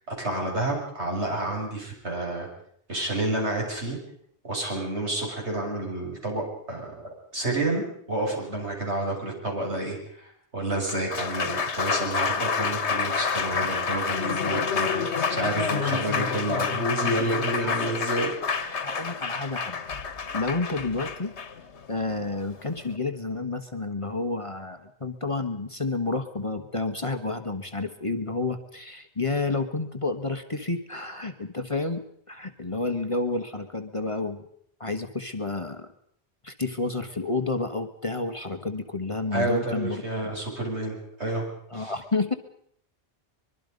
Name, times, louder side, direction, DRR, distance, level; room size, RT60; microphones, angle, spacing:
voice 1, 0.1-2.5 2.9-4.0 4.5-7.0 7.3-10.0 10.5-18.8 39.3-41.5 41.7-41.9, right 2 dB, 75° right, -1 dB, 6.9 m, -29 dB
Applause, 10.7-23.0, left 5 dB, 80° left, 1.5 m, -28 dB
voice 2, 18.8-19.8 20.3-21.3 21.9-34.4 34.8-35.9 36.4-40.0 41.7-42.3, left 3 dB, 30° left, 7 dB, 1.5 m, -30 dB
24.0 x 23.0 x 5.3 m, 0.66 s
omnidirectional pair, 1.1 m